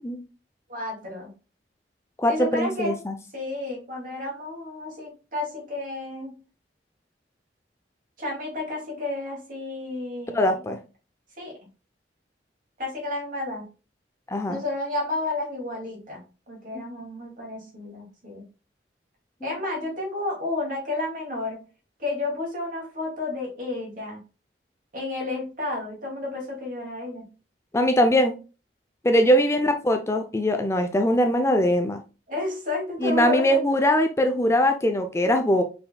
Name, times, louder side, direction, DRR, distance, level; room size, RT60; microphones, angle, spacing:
voice 1, 0.7-1.3 2.3-3.0 3.3-6.3 8.2-10.8 11.4-11.5 12.8-13.6 14.5-18.4 19.4-21.6 22.0-24.2 24.9-27.3 32.3-33.6, left 2 dB, 50° right, -2 dB, 2.4 m, -31 dB
voice 2, 2.2-3.1 10.3-10.8 14.3-14.6 16.7-16.8 19.4-19.6 27.7-28.4 29.0-32.0 33.0-35.6, equal, 15° left, 6 dB, 0.4 m, -21 dB
5.4 x 4.3 x 2.2 m, 0.33 s
head